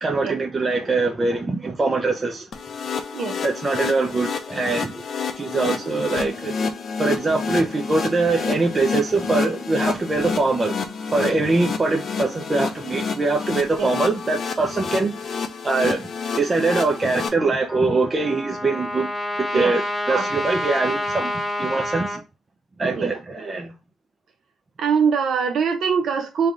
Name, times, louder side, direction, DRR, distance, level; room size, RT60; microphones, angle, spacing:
voice 1, 0.0-2.5 3.4-5.0 5.4-6.5 7.0-10.8 11.1-15.1 15.6-16.0 16.4-19.1 19.5-19.8 20.1-22.2 22.8-23.7, right 3 dB, 30° right, 0.5 m, -23 dB
sound 1, 2.5-17.3, left 5 dB, 55° left, 0.6 m, -29 dB
Trumpet, 17.7-22.2, left 1 dB, 15° left, 1.0 m, -28 dB
voice 2, 24.8-26.5, right 6 dB, 70° right, 0.8 m, -22 dB
3.3 x 2.3 x 3.8 m
cardioid pair, 85°, 0 cm